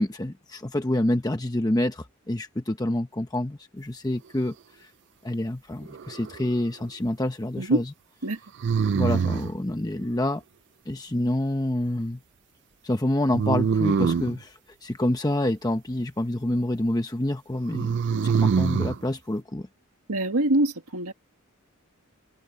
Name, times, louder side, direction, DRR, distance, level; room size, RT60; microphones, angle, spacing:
voice 1, 0.0-4.9 5.2-7.8 8.9-10.4 10.9-12.2 12.8-17.9 18.2-19.7, left 1 dB, 15° left, 0.8 m, -27 dB
sound 1, 5.9-6.6 8.6-9.6 13.3-14.4 17.7-19.0, right 6 dB, 55° right, 0.3 m, -24 dB
voice 2, 20.1-21.1, right 1 dB, 90° right, 2.0 m, -25 dB
head